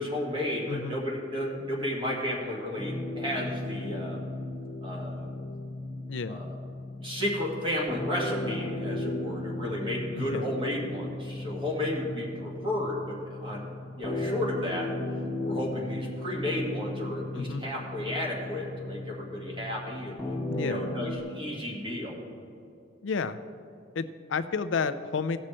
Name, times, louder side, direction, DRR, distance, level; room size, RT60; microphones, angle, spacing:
voice 1, 0.0-4.2 4.8-5.3 6.3-6.6 6.9-14.9 15.4-22.2, left 1 dB, 25° right, -2 dB, 2.1 m, -33 dB
voice 2, 0.7-1.0 6.1-6.4 10.1-10.5 17.3-17.7 20.5-20.9 23.0-23.4 23.9-25.4, left 5 dB, 70° left, 11 dB, 0.5 m, -31 dB
sound 1, 2.8-21.2, left 1 dB, 10° left, 1.8 m, -36 dB
17.0 x 6.2 x 4.3 m, 2.5 s
head